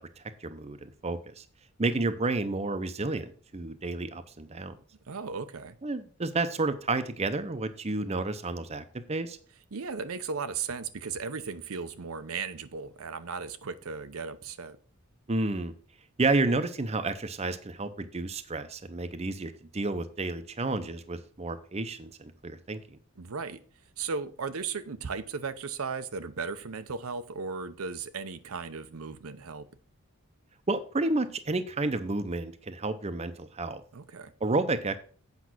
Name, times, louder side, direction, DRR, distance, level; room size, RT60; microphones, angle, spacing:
voice 1, 0.4-1.4 1.8-4.8 5.8-9.4 15.3-15.7 16.2-23.0 30.7-33.8 34.4-35.0, right 2 dB, 30° right, 0.7 m, -31 dB
voice 2, 5.1-5.8 9.7-14.8 23.2-23.6 24.0-29.7 33.9-34.3, right 5 dB, 70° right, 0.7 m, -36 dB
8.2 x 5.3 x 6.1 m
head